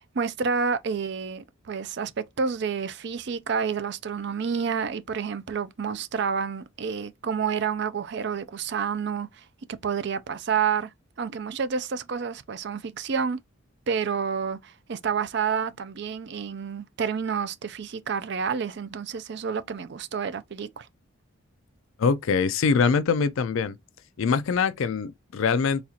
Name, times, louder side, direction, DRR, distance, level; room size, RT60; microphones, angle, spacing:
voice 1, 0.1-9.4 9.8-10.9 11.2-13.4 13.9-20.9, right 6 dB, 55° right, 0.4 m, -29 dB
voice 2, 22.0-23.8 24.2-25.8, left 5 dB, 70° left, 0.4 m, -23 dB
4.0 x 2.4 x 2.8 m
head